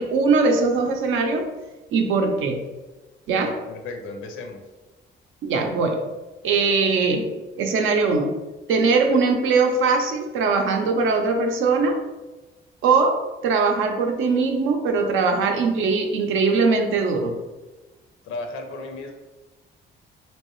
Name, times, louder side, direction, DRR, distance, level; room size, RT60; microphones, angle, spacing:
voice 1, 0.0-1.5 1.9-2.6 3.3-3.6 5.4-6.1 6.4-7.3 7.6-8.3 8.7-12.0 12.8-17.4, right 4 dB, 85° right, 4 dB, 0.5 m, -21 dB
voice 2, 3.4-4.6 18.2-19.1, left 3 dB, 85° left, 5 dB, 0.5 m, -34 dB
3.1 x 2.9 x 3.0 m, 1.2 s
cardioid pair, 90°, 20 cm